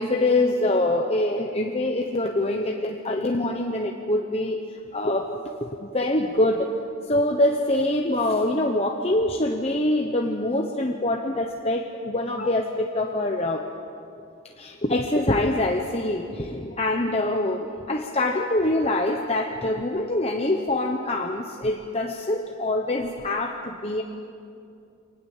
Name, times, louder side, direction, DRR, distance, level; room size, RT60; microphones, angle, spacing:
voice 1, 0.0-6.7 7.1-13.6 14.6-24.0, left 1 dB, 30° left, 2 dB, 1.0 m, -25 dB
24.5 x 19.5 x 7.3 m, 2.6 s
head